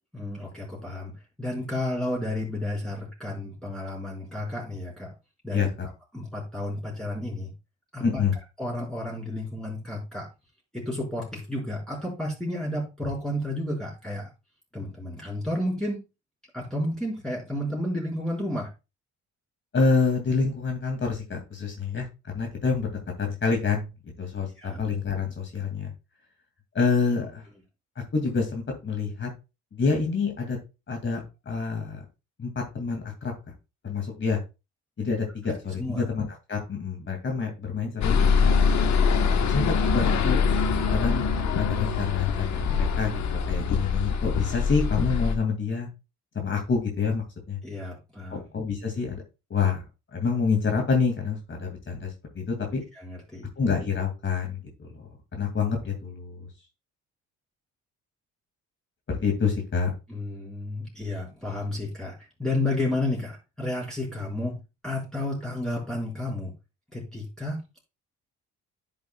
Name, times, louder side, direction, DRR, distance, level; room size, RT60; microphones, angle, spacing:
voice 1, 0.1-1.1 1.4-5.1 5.4-5.7 6.1-7.5 7.9-8.2 8.6-10.3 10.7-14.3 14.7-16.0 16.5-18.7 24.6-24.8 35.8-36.1 39.3-39.7 47.6-48.5 52.9-53.5 60.1-64.6 64.8-66.5 66.9-67.6, left 1 dB, ahead, -4 dB, 4.8 m, -31 dB
voice 2, 5.5-5.9 8.0-8.3 19.7-22.9 23.2-25.9 26.7-27.4 28.1-29.3 29.7-30.6 30.9-31.2 31.5-32.0 32.4-33.3 33.8-34.4 35.0-38.5 39.5-40.4 40.9-41.2 41.6-45.9 46.3-47.6 48.3-49.2 49.5-49.8 50.1-52.8 53.6-56.5 59.1-59.9, left 5 dB, 40° left, 2 dB, 2.5 m, -27 dB
sound 1, 38.0-45.3, left 5 dB, 65° left, 1.4 m, -23 dB
10.0 x 7.6 x 2.4 m, 0.27 s
cardioid pair, 90°, 30 cm